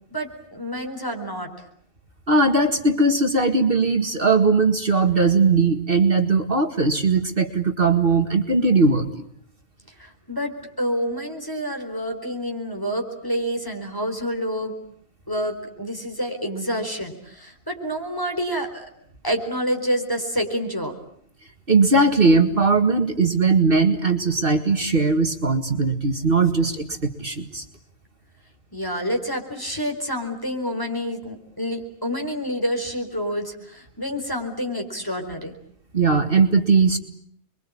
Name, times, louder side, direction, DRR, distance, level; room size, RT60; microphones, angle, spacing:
voice 1, 0.1-1.6 10.0-10.5 10.8-14.7 15.3-18.9 19.2-20.9 28.7-35.6, equal, 15° left, 3 dB, 4.3 m, -28 dB
voice 2, 2.3-9.2 21.7-27.6 35.9-37.0, right 3 dB, 45° right, 6 dB, 2.2 m, -19 dB
29.5 x 23.0 x 8.7 m, 0.66 s
omnidirectional pair, 1.3 m